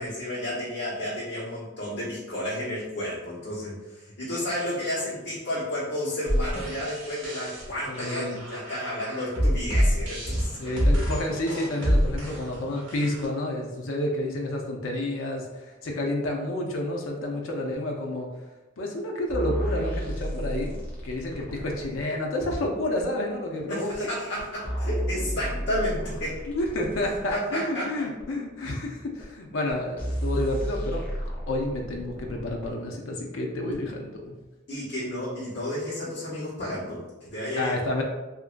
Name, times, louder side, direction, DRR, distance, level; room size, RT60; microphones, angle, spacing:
voice 1, 0.0-10.8 12.2-12.3 23.7-26.4 27.3-28.1 34.7-37.8, left 1 dB, 60° left, -11 dB, 1.0 m, -32 dB
sound 1, 6.3-13.3, equal, 70° right, 0.9 m, -27 dB
voice 2, 7.9-8.4 10.6-18.3 18.8-20.7 21.0-24.1 26.5-31.0 31.5-34.3 37.6-38.0, left 1 dB, 90° left, 0 dB, 0.5 m, -30 dB
sound 2, 19.3-22.0 23.0-23.1 23.9-24.0 24.4-27.4 28.2-28.3 29.2-29.3 29.7-29.8 30.0-32.7 33.7-33.8, equal, 10° left, 0.6 m, -32 dB
2.9 x 2.5 x 2.4 m, 1.1 s
head